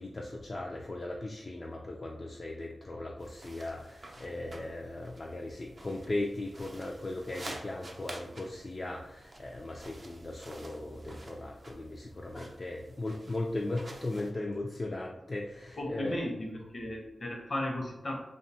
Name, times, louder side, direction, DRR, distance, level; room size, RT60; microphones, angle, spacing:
voice 1, 0.0-16.2, left 2 dB, 40° left, -1 dB, 0.3 m, -38 dB
sound 1, 3.2-14.3, right 2 dB, 50° right, 0.4 m, -50 dB
voice 2, 15.8-18.2, left 1 dB, 60° left, 0 dB, 0.7 m, -35 dB
2.7 x 2.2 x 2.7 m, 0.94 s
cardioid pair, 45°, 0 cm